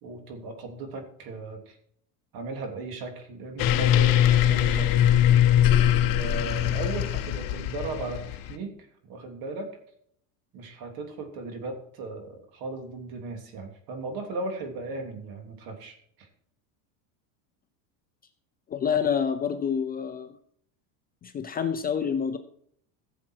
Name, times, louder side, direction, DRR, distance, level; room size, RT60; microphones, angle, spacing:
voice 1, 0.0-1.8 2.3-4.9 6.2-9.7 10.5-16.3, right 3 dB, 50° right, 5 dB, 3.1 m, -37 dB
sound 1, 3.6-8.5, left 11 dB, 45° left, 1.1 m, -21 dB
voice 2, 18.7-20.4 21.2-22.4, left 7 dB, 20° left, 8 dB, 0.5 m, -27 dB
15.5 x 7.5 x 4.7 m, 0.67 s
cardioid pair, 145°, 44 cm